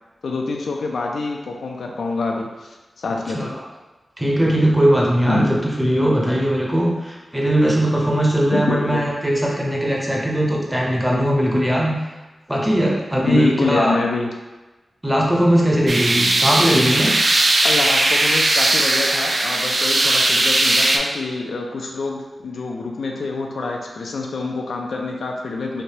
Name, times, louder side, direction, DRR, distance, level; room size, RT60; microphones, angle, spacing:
voice 1, 0.2-3.5 5.3-5.6 8.5-9.0 13.3-14.3 17.6-25.8, left 3 dB, 85° left, 0 dB, 0.4 m, -26 dB
voice 2, 4.2-12.0 12.5-14.0 15.0-17.1, equal, 5° right, -3 dB, 0.6 m, -19 dB
sound 1, 15.9-21.0, right 2 dB, 45° right, 0.3 m, -18 dB
3.2 x 2.6 x 2.8 m, 1.2 s
wide cardioid pair, 90°, 0 cm